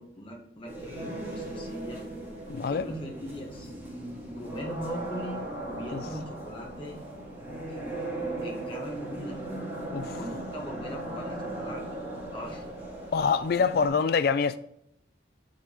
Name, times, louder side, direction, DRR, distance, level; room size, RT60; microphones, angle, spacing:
voice 1, 0.0-2.0 2.7-3.7 4.4-7.0 7.7-9.4 10.1-12.0 12.3-12.7, equal, 30° left, 2.0 m, -40 dB
sound 1, 0.6-13.9, right 1 dB, 15° right, 3.5 m, -38 dB
voice 2, 2.5-2.9 5.9-6.0 9.9-10.2 13.1-14.6, left 5 dB, 55° left, 0.3 m, -25 dB
6.8 x 6.6 x 4.8 m
head